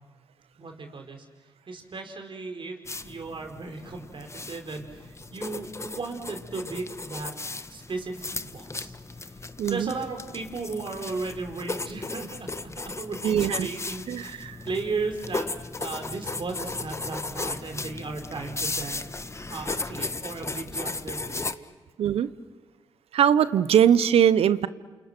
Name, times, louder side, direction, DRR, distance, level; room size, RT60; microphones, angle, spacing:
voice 1, 0.6-1.3 1.7-2.8 3.0-7.4 7.7-8.9 9.2-9.4 9.7-15.5 15.8-21.8, right 3 dB, 55° right, 4 dB, 4.8 m, -36 dB
sound 1, 2.9-21.6, left 3 dB, 25° left, 1.4 m, -36 dB
voice 2, 9.6-9.9 13.2-13.7 14.1-14.6 22.0-22.3 23.1-24.7, right 9 dB, 75° right, 15 dB, 0.9 m, -21 dB
29.0 x 28.0 x 6.1 m, 1.3 s
supercardioid pair, 40°, 10 cm